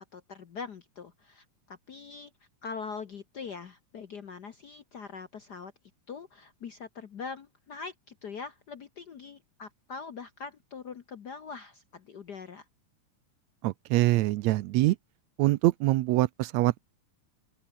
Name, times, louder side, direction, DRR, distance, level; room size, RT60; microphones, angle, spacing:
voice 1, 0.1-2.3 2.6-5.7 6.1-12.6, left 5 dB, 75° left, 0.9 m, -42 dB
voice 2, 13.6-15.0 15.4-16.8, right 18 dB, 80° right, 1.7 m, -24 dB
open air
omnidirectional pair, 3.6 m